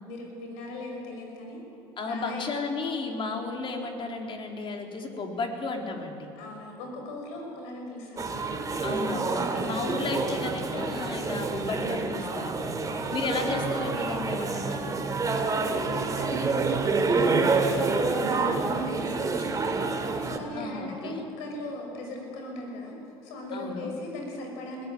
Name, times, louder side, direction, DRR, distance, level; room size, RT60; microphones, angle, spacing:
voice 1, 0.1-1.6 2.0-2.5 6.4-10.2 12.8-13.1 15.5-22.9 23.2-24.9, left 1 dB, 75° left, 1 dB, 6.4 m, -38 dB
voice 2, 2.0-6.3 8.8-12.8 13.1-15.0 20.5-21.2 23.5-23.9, left 3 dB, 45° left, 2 dB, 3.9 m, -33 dB
sound 1, 8.2-20.4, right 4 dB, 30° right, 2.5 m, -28 dB
20.5 x 16.5 x 9.3 m, 3.0 s
hypercardioid pair, 75°, 12 cm